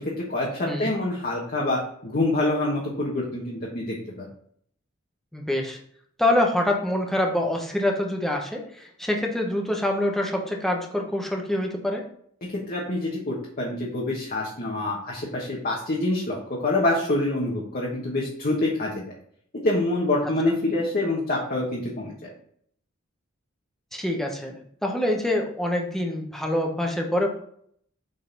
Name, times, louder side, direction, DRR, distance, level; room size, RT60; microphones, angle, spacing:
voice 1, 0.0-4.3 12.4-16.4 16.6-19.0 19.6-22.3, left 2 dB, 45° left, -3 dB, 1.2 m, -26 dB
voice 2, 5.3-5.8 6.2-12.0 23.9-27.3, left 1 dB, ahead, 1 dB, 1.0 m, -25 dB
7.8 x 4.0 x 4.0 m, 0.64 s
head